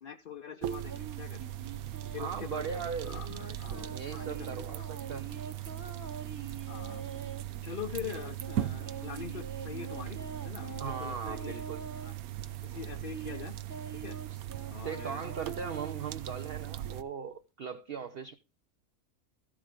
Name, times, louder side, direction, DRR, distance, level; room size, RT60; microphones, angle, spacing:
voice 1, 0.0-1.4 2.1-2.8 3.0-4.8 6.7-7.0 7.6-10.2 10.4-11.6 12.0-12.1 12.6-13.5 13.9-14.2 14.7-15.3, left 8 dB, 50° left, 5 dB, 0.7 m, -43 dB
sound 1, 0.6-17.0, right 13 dB, 85° right, 1.2 m, -39 dB
sound 2, 0.9-2.4 3.1-7.4 7.9-12.1 12.7-16.9, right 5 dB, 15° right, 1.0 m, -45 dB
voice 2, 2.2-3.2 3.9-5.4 10.8-11.8 14.8-18.4, right 6 dB, 50° right, 8 dB, 0.9 m, -39 dB
14.0 x 7.2 x 5.1 m, 0.29 s
omnidirectional pair, 1.5 m